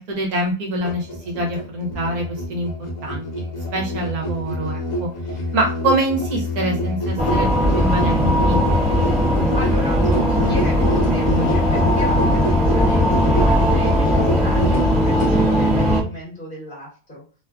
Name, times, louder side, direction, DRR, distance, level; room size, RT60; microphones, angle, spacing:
voice 1, 0.1-2.7 3.0-3.2 3.7-5.1 5.5-8.6, right 1 dB, 70° right, 0 dB, 1.2 m, -25 dB
Musical instrument, 0.8-15.4, left 1 dB, 65° left, 1.1 m, -25 dB
sound 1, 7.2-16.0, equal, 5° right, 0.6 m, -18 dB
voice 2, 9.5-17.2, left 1 dB, 35° left, -5 dB, 1.2 m, -34 dB
3.0 x 2.3 x 2.3 m, 0.37 s
omnidirectional pair, 1.8 m